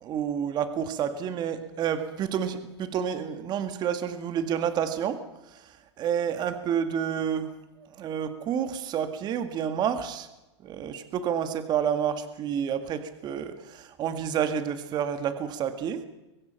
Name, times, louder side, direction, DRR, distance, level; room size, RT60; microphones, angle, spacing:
voice 1, 0.0-5.2 6.0-7.6 7.9-10.3 10.6-16.1, right 8 dB, 30° right, 9 dB, 2.0 m, -29 dB
24.0 x 20.5 x 5.8 m, 1.0 s
hypercardioid pair, 130°, 15 cm